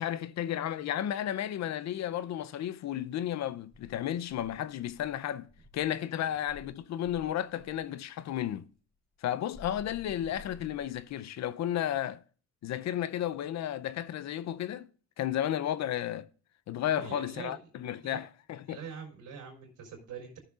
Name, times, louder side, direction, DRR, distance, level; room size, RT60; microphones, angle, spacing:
voice 1, 0.0-8.7 9.2-12.2 12.6-14.9 15.2-16.3 16.7-18.8, left 11 dB, 65° left, 0.6 m, -33 dB
Insect, 3.7-6.0 6.5-7.9 9.5-11.2, left 3 dB, ahead, 3.2 m, -53 dB
voice 2, 16.8-17.6 18.0-18.2 18.7-20.4, right 6 dB, 85° right, 3.7 m, -44 dB
15.0 x 6.5 x 2.4 m
cardioid pair, 90°, 30 cm